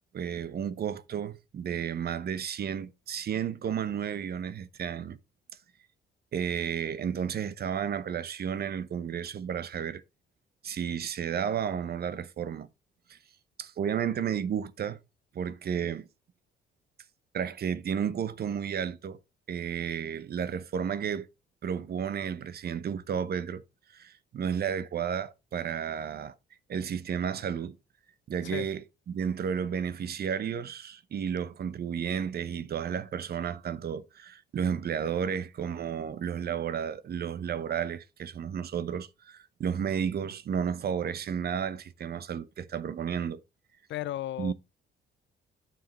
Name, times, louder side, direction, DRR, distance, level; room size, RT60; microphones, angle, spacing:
voice 1, 0.1-5.2 6.3-10.0 10.6-12.7 13.1-13.2 13.6-15.0 15.3-16.1 17.3-19.2 19.5-21.3 21.6-23.6 23.9-26.3 26.7-27.8 28.3-43.4 44.4-44.5, right 8 dB, 50° right, 0.8 m, -32 dB
voice 2, 43.9-44.5, left 13 dB, 65° left, 0.5 m, -34 dB
9.0 x 5.2 x 4.1 m
cardioid pair, 90°, 20 cm